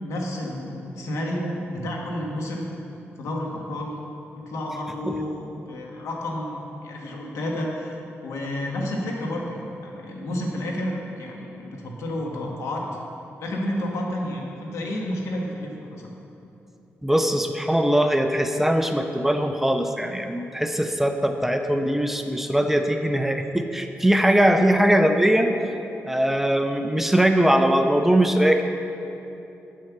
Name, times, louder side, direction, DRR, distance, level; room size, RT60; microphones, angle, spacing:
voice 1, 0.0-2.7 3.2-4.0 4.4-12.8 13.4-16.1, left 1 dB, 90° left, -1 dB, 1.5 m, -30 dB
voice 2, 17.0-25.5 26.0-28.6, right 1 dB, 5° right, 6 dB, 0.6 m, -21 dB
7.8 x 7.5 x 6.0 m, 2.9 s
cardioid pair, 95°, 5 cm